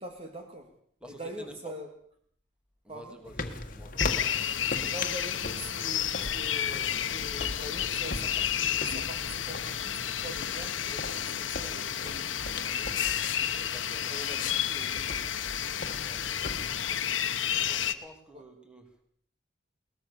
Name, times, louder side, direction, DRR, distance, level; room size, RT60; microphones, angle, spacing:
voice 1, 0.0-0.8 1.1-1.9 2.9-3.2 4.9-13.2 14.1-15.3 18.3-18.4, equal, 30° right, 4 dB, 2.4 m, -44 dB
voice 2, 1.0-1.7 2.8-4.1 13.6-14.5 15.8-16.8 17.5-19.0, equal, 5° right, 4 dB, 2.9 m, -50 dB
sound 1, 3.2-17.0, left 3 dB, 45° left, 1.7 m, -39 dB
sound 2, 4.0-17.9, left 9 dB, 90° left, 1.3 m, -31 dB
21.5 x 20.0 x 6.9 m, 0.62 s
head